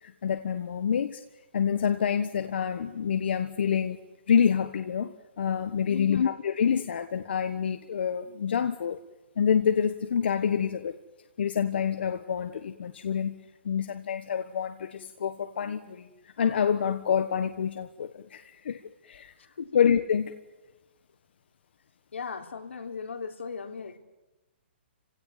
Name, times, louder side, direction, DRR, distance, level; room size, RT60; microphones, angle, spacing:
voice 1, 0.0-1.2 1.5-4.0 4.3-9.0 9.4-10.9 11.4-13.4 13.6-16.1 16.4-19.3 19.7-20.3, left 7 dB, 60° left, 8 dB, 1.4 m, -27 dB
voice 2, 5.9-6.3 19.4-19.8 22.1-24.0, left 5 dB, 85° left, 4 dB, 3.7 m, -37 dB
29.5 x 17.0 x 9.6 m, 1.1 s
hypercardioid pair, 160°, 6 cm